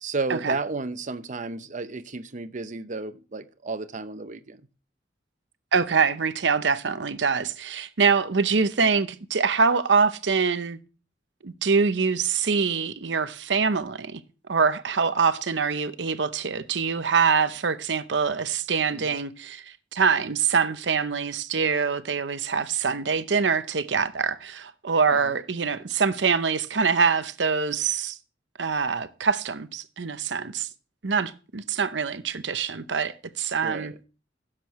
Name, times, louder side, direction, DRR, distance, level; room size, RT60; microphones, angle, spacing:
voice 1, 0.0-4.6 18.9-19.2 25.1-25.4 33.6-34.0, right 3 dB, 45° right, 0.7 m, -33 dB
voice 2, 5.7-10.8 11.4-14.2 14.5-19.6 19.9-28.2 28.6-30.7 31.0-33.9, right 5 dB, 80° right, 0.8 m, -24 dB
16.0 x 7.5 x 3.1 m
head